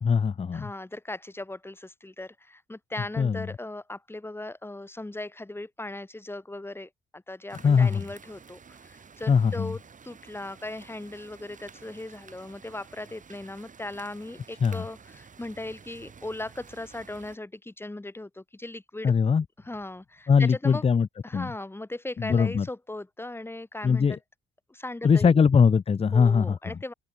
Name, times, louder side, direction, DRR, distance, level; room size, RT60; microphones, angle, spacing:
voice 1, 0.0-0.7 3.2-3.5 7.6-8.0 9.3-9.7 14.6-14.8 19.0-19.4 20.3-21.1 21.3-21.5 22.2-22.7 23.8-24.2 25.0-26.6, left 6 dB, 30° left, 0.7 m, -21 dB
voice 2, 0.5-19.1 19.6-20.8 21.2-24.2 24.7-25.4 26.1-26.9, left 2 dB, 10° left, 3.2 m, -38 dB
sound 1, 7.5-17.4, right 6 dB, 40° right, 5.3 m, -51 dB
open air
cardioid pair, 90°, 20 cm